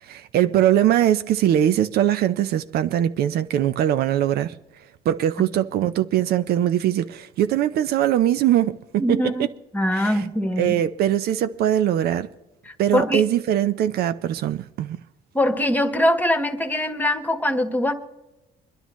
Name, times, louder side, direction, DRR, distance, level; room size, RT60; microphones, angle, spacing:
voice 1, 0.1-4.5 5.1-9.5 9.9-10.2 10.6-12.3 12.8-15.0, right 11 dB, 65° right, 0.5 m, -21 dB
voice 2, 9.0-9.5 9.7-10.8 12.7-13.2 15.3-17.9, left 1 dB, 10° left, 1.3 m, -22 dB
26.5 x 10.5 x 3.1 m
cardioid pair, 110°, 17 cm